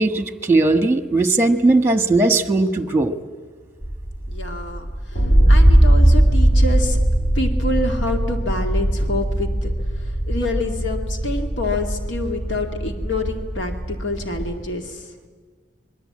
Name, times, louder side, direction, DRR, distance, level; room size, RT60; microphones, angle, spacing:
voice 1, 0.0-3.1, right 2 dB, 15° right, 9 dB, 1.4 m, -18 dB
sound 1, 3.8-14.6, right 1 dB, 50° left, 3.8 m, -19 dB
voice 2, 4.3-5.2 5.5-7.0 7.3-15.1, left 2 dB, 75° left, 4 dB, 2.3 m, -27 dB
26.0 x 22.0 x 8.8 m, 1.5 s
head